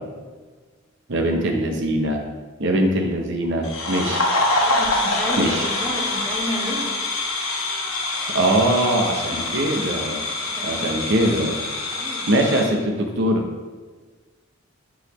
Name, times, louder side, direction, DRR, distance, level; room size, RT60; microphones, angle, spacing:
voice 1, 1.1-2.2 2.6-4.2 5.4-5.7 8.3-10.2 10.6-11.6 12.3-13.4, right 1 dB, 60° right, 3 dB, 0.7 m, -22 dB
sound 1, 3.6-12.7, left 2 dB, 85° left, 1.1 m, -25 dB
voice 2, 4.6-6.9 9.3-9.4 10.6-10.7 11.9-12.3, left 1 dB, 5° left, -2 dB, 0.9 m, -31 dB
sound 2, 4.6-12.9, equal, 25° right, 1.2 m, -40 dB
8.5 x 4.0 x 3.0 m, 1.4 s
head